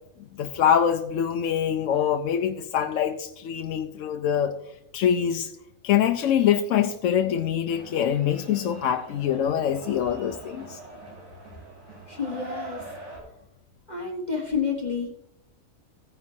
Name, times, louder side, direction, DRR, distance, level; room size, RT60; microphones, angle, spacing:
voice 1, 0.4-4.6 4.9-5.5 5.8-10.8, left 9 dB, 70° left, 6 dB, 0.9 m, -24 dB
sound 1, 7.7-13.2, right 2 dB, 55° right, 3.9 m, -43 dB
voice 2, 12.1-12.9 13.9-15.1, left 6 dB, 35° left, -1 dB, 1.2 m, -29 dB
15.0 x 9.5 x 2.7 m, 0.83 s
omnidirectional pair, 1.4 m